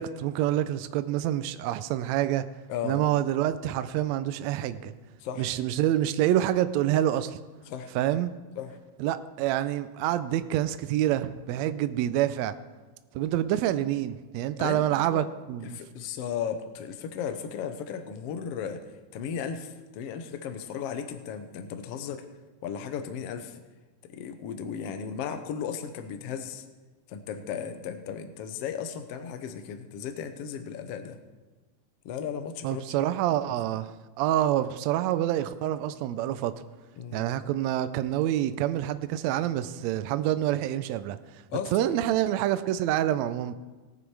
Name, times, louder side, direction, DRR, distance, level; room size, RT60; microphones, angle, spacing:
voice 1, 0.0-2.4 2.8-4.9 5.4-7.4 7.9-8.3 9.0-12.5 13.1-15.8 32.6-36.5 37.1-41.4 41.7-43.5, right 12 dB, 85° right, 12 dB, 1.6 m, -27 dB
voice 2, 2.7-3.0 5.2-5.5 7.7-7.9 8.6-8.8 14.6-15.3 15.6-18.8 19.1-22.2 22.6-23.6 24.1-26.6 27.1-31.2 32.0-33.0 37.0-37.3 41.5-41.9, left 7 dB, 70° left, 8 dB, 1.6 m, -35 dB
18.0 x 8.3 x 4.7 m, 1.3 s
omnidirectional pair, 3.7 m